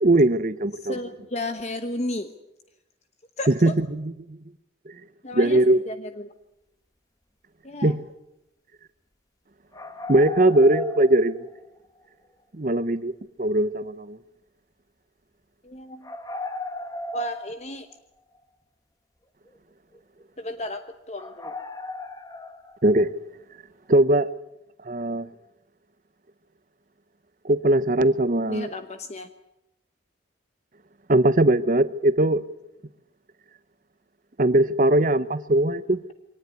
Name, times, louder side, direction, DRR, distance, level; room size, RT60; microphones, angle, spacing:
voice 1, 0.0-1.0 3.5-4.4 5.3-5.8 7.8-8.0 10.1-11.5 12.5-13.1 13.4-14.2 22.8-23.1 23.9-24.3 24.9-25.3 27.4-28.7 31.1-32.4 34.4-36.0, right 1 dB, 45° right, 0.9 m, -20 dB
voice 2, 0.8-2.3 3.4-3.7 5.2-6.3 7.6-7.9 15.6-16.1 17.1-17.9 20.4-21.5 28.5-29.3, left 1 dB, 35° left, 1.0 m, -33 dB
sound 1, 9.7-11.8 12.0-12.1 16.0-18.0 18.4-18.5 19.5-19.6 19.9-20.0 20.6-20.8 21.2-23.1, left 2 dB, 20° left, 1.5 m, -36 dB
23.5 x 19.0 x 9.5 m
head